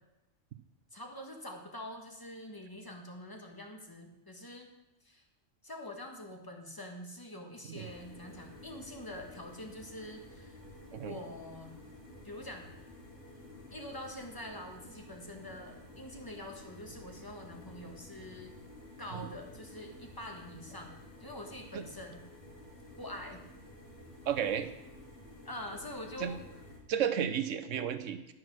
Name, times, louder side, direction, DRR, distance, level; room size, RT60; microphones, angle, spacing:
voice 1, 0.9-4.7 5.0-5.2 5.6-10.6 11.0-11.7 12.2-12.7 13.7-18.5 19.0-20.9 21.2-22.2 23.0-23.4 25.4-26.4, left 1 dB, 15° left, 2 dB, 1.4 m, -45 dB
sound 1, 7.7-26.8, left 1 dB, 50° left, 3.4 m, -52 dB
voice 2, 24.3-24.7 26.2-26.3 26.9-28.2, right 8 dB, 80° right, 10 dB, 1.1 m, -32 dB
12.0 x 6.2 x 6.2 m, 0.94 s
omnidirectional pair, 1.3 m